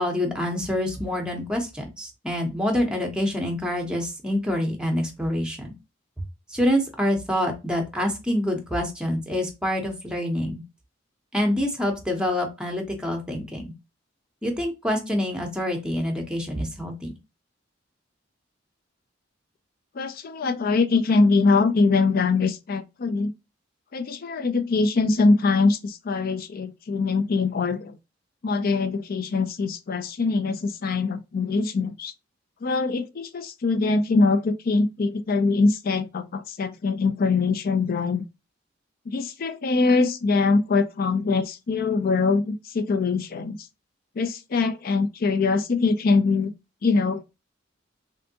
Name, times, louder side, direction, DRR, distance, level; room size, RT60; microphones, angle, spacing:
voice 1, 0.0-5.7 6.5-10.6 11.3-13.7 14.4-17.1, left 1 dB, 5° right, 0.7 m, -26 dB
voice 2, 20.0-23.3 23.9-28.0 28.4-32.1 32.6-38.2 39.1-43.6 44.2-46.5 46.8-47.2, left 4 dB, 50° left, 0.4 m, -23 dB
3.3 x 2.6 x 2.7 m
head